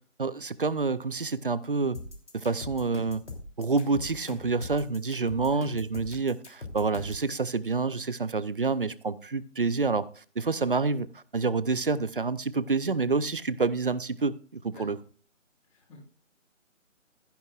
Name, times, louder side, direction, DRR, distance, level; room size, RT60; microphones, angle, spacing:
voice 1, 0.2-2.0 2.3-3.2 3.6-15.0, right 4 dB, 45° right, 0.6 m, -28 dB
sound 1, 1.9-7.3, left 2 dB, 65° left, 3.2 m, -41 dB
voice 2, 5.5-5.6 14.7-15.0 15.7-16.0, left 2 dB, 10° left, 4.5 m, -51 dB
14.5 x 10.5 x 2.4 m
figure-of-eight pair, 150°, 38 cm